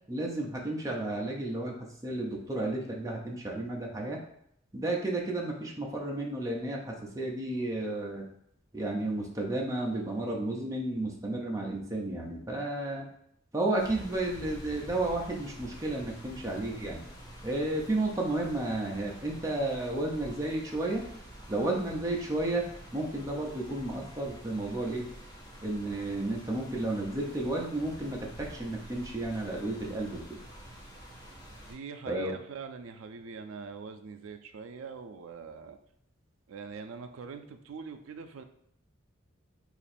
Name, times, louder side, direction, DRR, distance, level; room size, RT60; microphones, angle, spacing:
voice 1, 0.1-4.2 4.7-8.3 8.7-13.1 13.5-17.0 17.4-21.0 21.5-22.7 22.9-25.0 25.6-30.2 32.1-32.3, right 2 dB, 15° right, -1 dB, 0.5 m, -32 dB
sound 1, 13.8-31.7, equal, 20° left, 1.3 m, -48 dB
voice 2, 31.7-35.8 36.5-38.4, right 5 dB, 80° right, 8 dB, 0.4 m, -43 dB
3.0 x 2.5 x 4.2 m, 0.70 s
head